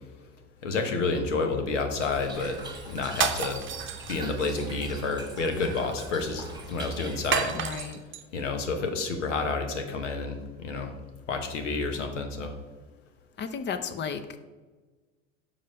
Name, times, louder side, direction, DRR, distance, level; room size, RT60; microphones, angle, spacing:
voice 1, 0.6-2.6 2.8-3.6 4.1-7.5 8.3-10.9 11.3-12.5, left 3 dB, 85° left, 5 dB, 1.1 m, -29 dB
Toilet flush / Trickle dribble, 2.0-7.5, right 2 dB, 10° right, 1.4 m, -42 dB
sound 1, 3.1-4.6 7.3-8.2, right 7 dB, 35° right, 0.8 m, -30 dB
voice 2, 7.5-8.0 13.4-14.2, left 6 dB, 30° left, 10 dB, 0.7 m, -33 dB
5.6 x 4.9 x 5.3 m, 1.3 s
hypercardioid pair, 85°, 36 cm